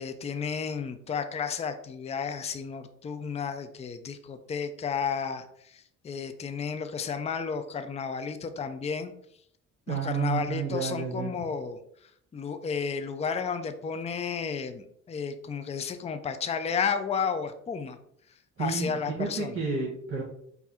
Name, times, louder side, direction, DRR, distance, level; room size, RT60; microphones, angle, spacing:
voice 1, 0.0-9.1 9.9-11.8 12.3-18.0 18.6-19.6, left 6 dB, 20° left, 9 dB, 0.4 m, -32 dB
voice 2, 9.9-11.4 18.6-20.2, right 5 dB, 40° right, -4 dB, 1.4 m, -31 dB
4.6 x 2.7 x 4.2 m, 0.69 s
cardioid pair, 105°, 31 cm